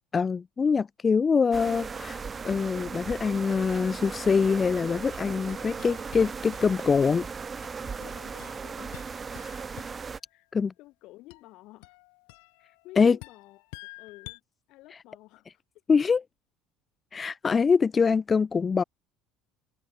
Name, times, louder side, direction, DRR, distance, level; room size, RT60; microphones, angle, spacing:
voice 1, 0.1-7.3 10.5-10.7 13.0-13.2 15.9-16.2 17.1-18.8, left 5 dB, 25° left, 0.5 m, -24 dB
sound 1, 1.5-10.2, right 5 dB, 25° right, 2.1 m, -37 dB
sound 2, 3.9-4.7 5.1-7.1 7.6-10.3 11.3-14.4, left 36 dB, 85° left, 5.1 m, -50 dB
voice 2, 8.0-9.0 10.3-10.5 10.8-12.0 12.6-13.6 14.0-14.4 14.7-15.6, left 19 dB, 65° left, 4.5 m, -51 dB
supercardioid pair, 110°, 0 cm